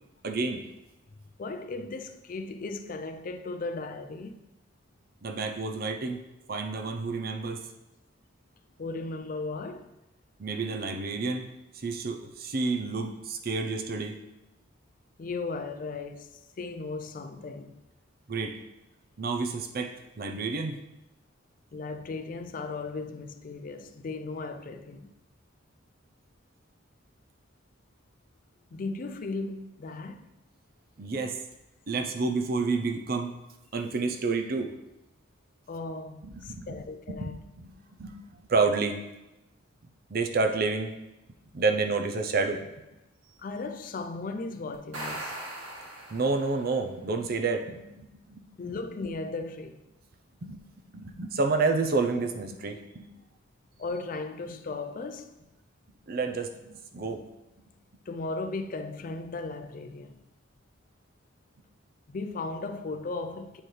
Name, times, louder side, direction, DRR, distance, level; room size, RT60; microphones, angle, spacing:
voice 1, 0.2-0.7 5.2-6.2 6.5-7.6 10.4-14.2 18.3-18.6 19.2-20.8 31.0-31.4 31.9-33.3 33.7-34.7 36.2-36.7 37.1-37.7 38.0-39.0 40.1-41.0 41.5-42.7 46.1-48.5 50.4-50.6 50.9-53.1 56.1-57.2, right 4 dB, 45° right, 0.6 m, -29 dB
voice 2, 1.4-4.4 8.8-9.9 15.2-17.8 21.7-25.1 28.7-30.3 35.7-37.4 43.4-45.4 48.6-49.8 53.8-55.3 58.1-60.2 62.1-63.6, left 3 dB, 40° left, 0.4 m, -36 dB
sound 1, 44.7-46.7, right 1 dB, 75° right, 1.6 m, -39 dB
9.0 x 4.3 x 3.2 m
head